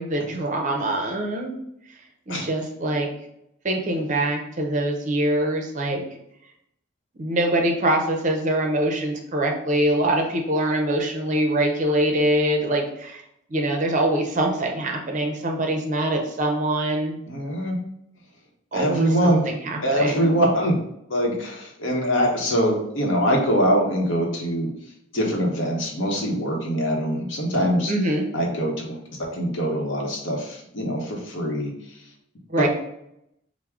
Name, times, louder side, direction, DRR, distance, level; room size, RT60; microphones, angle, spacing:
voice 1, 0.0-1.5 2.3-3.1 3.6-6.0 7.2-13.2 13.5-17.2 18.7-20.3 27.9-28.2 32.5-32.7, right 1 dB, 35° right, 1 dB, 0.5 m, -24 dB
voice 2, 17.3-17.8 18.7-19.5 19.8-20.8 21.1-24.7 25.1-27.9 28.3-31.7 32.6-32.7, equal, 65° left, 0 dB, 0.9 m, -23 dB
4.6 x 2.0 x 3.5 m, 0.79 s
head